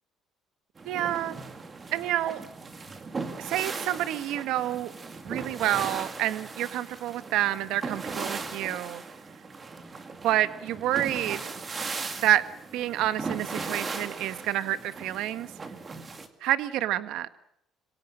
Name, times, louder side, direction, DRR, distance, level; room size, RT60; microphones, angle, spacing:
sound 1, 0.8-16.3, right 4 dB, 20° right, 2.4 m, -38 dB
voice 1, 0.8-1.4 1.9-2.4 3.4-4.9 5.2-9.0 10.2-11.5 12.2-12.4 12.7-15.5 16.4-17.3, right 13 dB, 70° right, 12 dB, 1.5 m, -28 dB
27.0 x 24.5 x 6.4 m, 0.75 s
cardioid pair, 165°, 0 cm